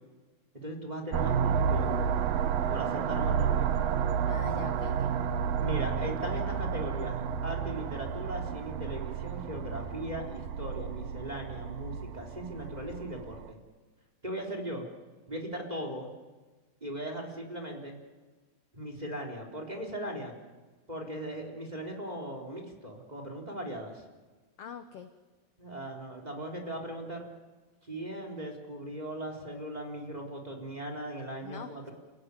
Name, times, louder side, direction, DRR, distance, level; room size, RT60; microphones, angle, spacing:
voice 1, 0.5-2.2 2.7-3.7 5.6-13.6 14.2-14.8 15.3-16.1 16.8-18.0 18.7-20.3 20.9-24.0 25.6-27.3 27.8-31.9, right 1 dB, 10° right, 2 dB, 3.5 m, -38 dB
sound 1, 1.1-13.5, right 7 dB, 80° right, 2.9 m, -31 dB
voice 2, 4.3-5.1 24.6-25.1 31.4-31.9, left 8 dB, 65° left, 8 dB, 1.5 m, -43 dB
30.0 x 17.0 x 9.7 m, 1.3 s
omnidirectional pair, 4.1 m